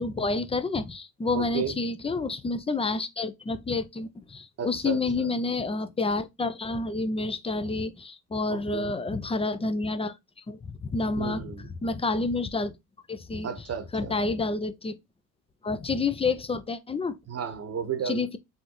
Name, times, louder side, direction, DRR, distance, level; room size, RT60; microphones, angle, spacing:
voice 1, 0.0-10.2 10.5-11.4 11.8-12.7 13.1-13.5 13.9-15.0 15.6-17.2 18.0-18.4, left 3 dB, 15° left, 0.5 m, -29 dB
voice 2, 1.3-1.7 4.6-5.3 8.5-9.0 11.2-11.7 13.4-14.2 17.3-18.3, right 7 dB, 35° right, 1.0 m, -33 dB
4.0 x 3.7 x 3.0 m
hypercardioid pair, 60°, 46 cm